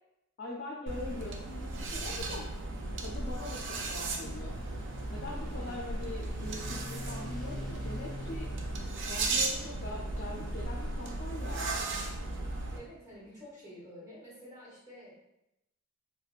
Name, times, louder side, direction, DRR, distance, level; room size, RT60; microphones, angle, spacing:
voice 1, 0.4-2.5 3.0-4.7 5.1-8.5 9.1-11.8, left 2 dB, 45° left, -2 dB, 0.4 m, -42 dB
sound 1, 0.9-12.8, right 2 dB, 55° right, 0.4 m, -36 dB
Motorcycle, 1.7-13.3, left 1 dB, 5° left, 0.9 m, -49 dB
voice 2, 12.7-15.1, equal, 15° right, -8 dB, 1.1 m, -49 dB
3.2 x 2.1 x 2.4 m, 0.88 s
head